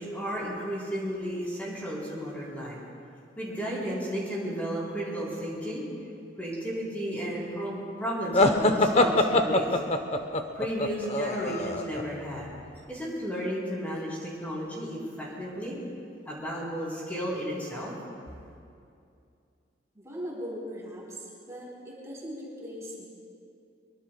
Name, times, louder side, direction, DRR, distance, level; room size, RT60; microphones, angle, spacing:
voice 1, 0.0-2.8 3.4-5.8 6.4-9.8 10.5-12.5 12.9-15.8 16.3-18.0, equal, 10° left, -6 dB, 3.8 m, -33 dB
sound 1, 8.3-12.0, left 2 dB, 35° left, 0.8 m, -23 dB
voice 2, 19.9-23.1, equal, 15° right, -5 dB, 3.9 m, -39 dB
24.5 x 23.0 x 2.3 m, 2.5 s
head